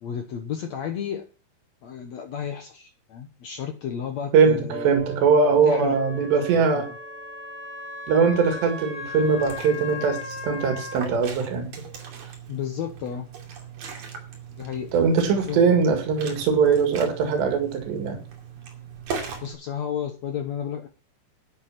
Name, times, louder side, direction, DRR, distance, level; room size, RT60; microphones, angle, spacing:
voice 1, 0.0-1.3 1.8-4.9 5.6-6.0 6.4-6.8 12.5-13.3 14.6-14.9 15.5-15.6 19.4-20.9, left 8 dB, 75° left, 6 dB, 1.5 m, -32 dB
voice 2, 4.3-6.9 8.1-11.7 14.9-18.2, right 5 dB, 90° right, 5 dB, 4.1 m, -21 dB
sound 1, 4.7-9.8, right 4 dB, 75° right, 5.5 m, -41 dB
Wind instrument woodwind instrument, 5.9-11.0, left 3 dB, 10° left, 1.2 m, -37 dB
Liquid, 9.2-19.5, right 6 dB, 60° right, 4.1 m, -39 dB
12.0 x 8.4 x 5.8 m, 0.33 s
omnidirectional pair, 4.8 m